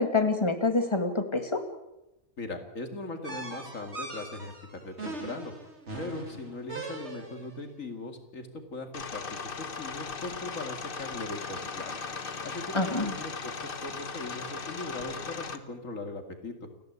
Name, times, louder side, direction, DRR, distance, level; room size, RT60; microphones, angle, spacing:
voice 1, 0.0-1.6 12.7-13.1, left 3 dB, 20° left, 6 dB, 2.1 m, -26 dB
voice 2, 2.4-5.5 6.0-12.0 12.4-16.7, left 2 dB, 75° left, 5 dB, 2.7 m, -39 dB
sound 1, 3.2-7.5, right 2 dB, 55° right, 3.3 m, -40 dB
sound 2, 8.9-15.6, left 5 dB, 45° left, 1.3 m, -38 dB
29.0 x 11.0 x 8.3 m, 0.92 s
omnidirectional pair, 1.4 m